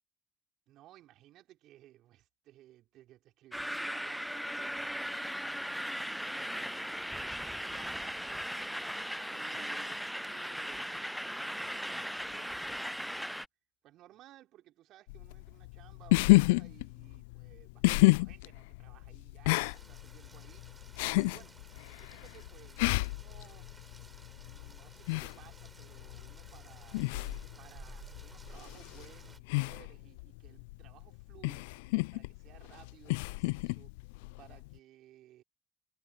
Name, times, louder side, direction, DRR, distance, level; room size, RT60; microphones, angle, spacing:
voice 1, 0.7-4.9 5.4-8.8 9.1-13.4 13.8-21.6 22.0-23.7 24.4-27.1 27.6-34.0 34.4-35.4, right 14 dB, 70° right, 4.7 m, -59 dB
sound 1, 3.5-13.5, equal, ahead, 0.4 m, -38 dB
sound 2, 15.1-34.8, left 24 dB, 80° left, 0.3 m, -31 dB
Rain, 19.6-29.4, right 3 dB, 25° right, 5.5 m, -55 dB
hypercardioid pair, 45°, 0 cm